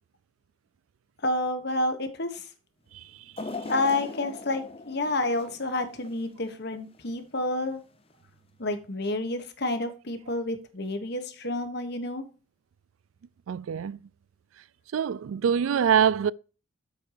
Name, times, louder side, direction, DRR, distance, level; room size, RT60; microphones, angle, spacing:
voice 1, 1.2-2.4 3.7-7.8 8.6-12.2, left 2 dB, 50° left, 1.4 m, -29 dB
sound 1, 3.4-6.5 6.9-7.1 8.1-8.2, left 3 dB, 30° left, 0.7 m, -39 dB
voice 2, 13.5-14.0 14.9-16.3, right 8 dB, 80° right, 0.3 m, -24 dB
8.1 x 4.5 x 6.6 m
head